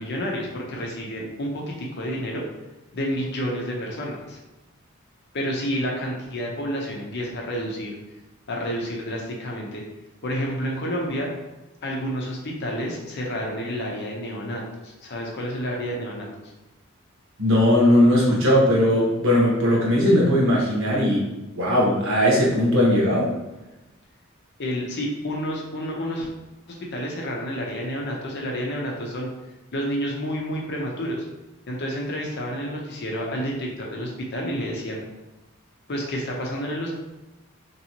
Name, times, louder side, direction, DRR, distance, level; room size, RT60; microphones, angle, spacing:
voice 1, 0.0-2.5 2.9-4.4 5.3-8.0 8.5-9.8 10.2-11.3 11.8-16.3 24.6-26.3 26.7-29.3 29.7-31.3 31.7-35.0 35.9-36.9, equal, 55° left, -1 dB, 0.7 m, -29 dB
voice 2, 17.4-21.3 21.6-23.3, left 1 dB, 70° right, -4 dB, 1.1 m, -19 dB
3.0 x 2.8 x 2.8 m, 1.0 s
head